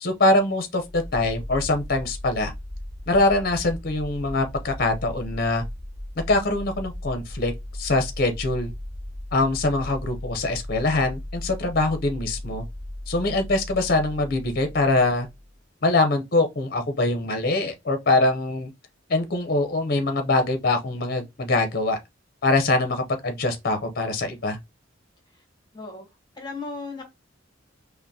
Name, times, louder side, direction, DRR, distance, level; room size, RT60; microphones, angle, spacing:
voice 1, 0.0-2.5 3.1-5.6 6.3-7.5 7.8-8.7 9.3-12.6 13.1-15.3 15.8-18.7 19.1-22.0 22.4-24.6, left 2 dB, 50° left, 0.7 m, -23 dB
sound 1, 0.8-15.5, left 1 dB, 45° right, 0.9 m, -37 dB
voice 2, 25.7-26.1 26.3-27.0, left 3 dB, 25° left, 1.1 m, -36 dB
5.4 x 2.1 x 2.7 m
head